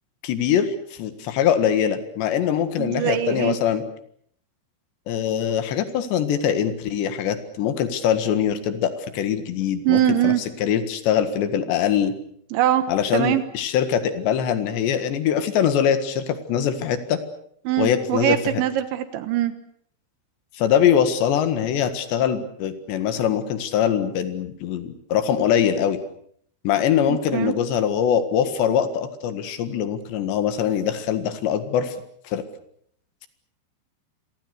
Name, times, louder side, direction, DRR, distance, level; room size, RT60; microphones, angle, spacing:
voice 1, 0.2-3.8 5.1-12.1 12.9-17.2 17.8-18.6 20.6-26.0 26.6-32.0 32.3-32.4, left 9 dB, 70° left, 10 dB, 3.9 m, -23 dB
voice 2, 2.8-3.6 9.9-10.4 12.5-12.9 13.1-13.4 17.7-19.5 27.1-27.5, right 12 dB, 80° right, 11 dB, 3.6 m, -22 dB
28.5 x 23.5 x 6.6 m, 0.64 s
omnidirectional pair, 5.3 m